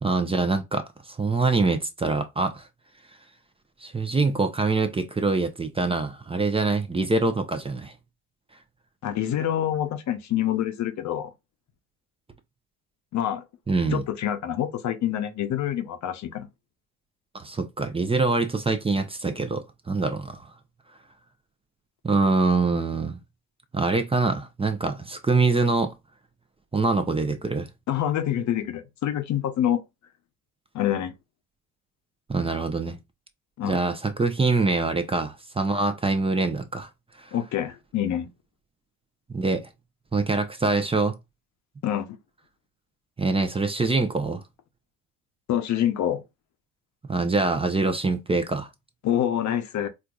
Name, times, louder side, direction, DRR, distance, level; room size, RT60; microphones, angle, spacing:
voice 1, 0.0-2.7 3.8-7.9 13.7-14.0 17.3-20.5 22.0-23.2 23.7-25.9 26.7-27.7 32.3-33.0 33.6-36.9 37.2-37.3 39.3-39.7 40.1-41.2 43.2-44.4 47.1-48.7, right 3 dB, 15° right, 0.8 m, -24 dB
voice 2, 9.0-11.3 13.1-13.4 13.9-16.5 27.9-29.8 30.7-31.1 33.6-33.8 37.3-38.3 41.8-42.2 45.5-46.2 49.0-49.9, left 10 dB, 50° left, 0.8 m, -26 dB
4.4 x 2.7 x 2.4 m
hypercardioid pair, 60°, 37 cm